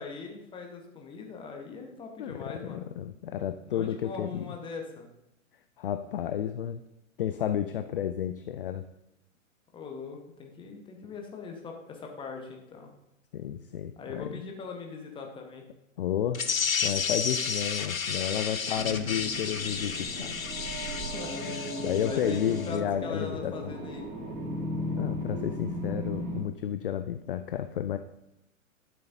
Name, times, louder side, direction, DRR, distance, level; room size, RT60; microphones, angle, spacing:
voice 1, 0.0-2.9 3.7-5.1 9.7-12.9 14.0-15.6 21.1-21.5 22.0-24.4, left 4 dB, 10° left, 2 dB, 1.1 m, -40 dB
voice 2, 2.2-4.5 5.8-6.8 7.2-8.9 13.3-14.3 16.0-16.5 16.8-20.4 21.4-23.7 25.0-28.0, left 10 dB, 45° left, 9 dB, 0.4 m, -32 dB
sound 1, 16.3-22.8, left 6 dB, 80° left, 0.7 m, -32 dB
sound 2, 18.7-26.4, equal, 30° right, 1.5 m, -36 dB
12.0 x 6.8 x 2.7 m, 0.85 s
figure-of-eight pair, 110°, 40 cm